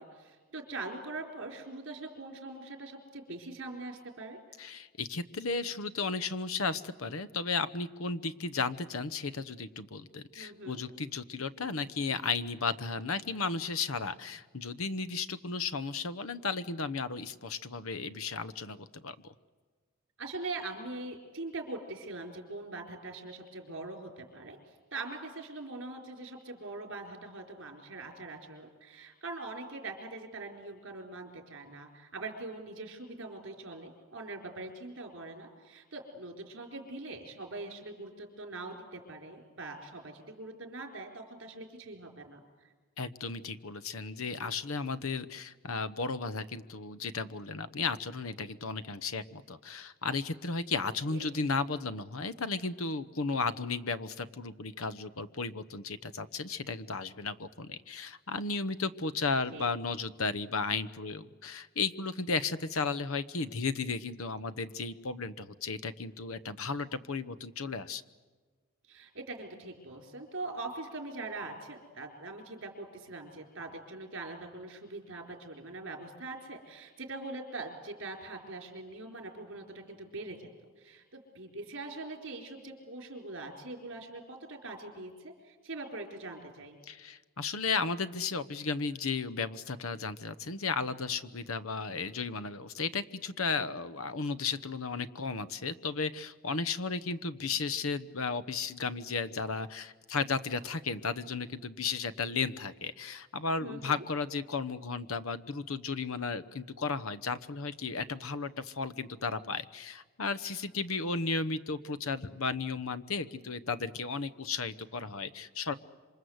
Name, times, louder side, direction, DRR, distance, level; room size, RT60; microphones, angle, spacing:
voice 1, 0.0-4.4 10.3-10.8 20.2-42.4 51.1-51.2 59.5-59.7 68.9-80.5 80.8-86.8 103.6-104.0, right 2 dB, 60° right, 4 dB, 4.4 m, -42 dB
voice 2, 4.6-19.3 43.0-68.0 86.9-115.7, left 4 dB, 80° left, 13 dB, 1.0 m, -34 dB
27.0 x 25.5 x 8.0 m, 1.4 s
head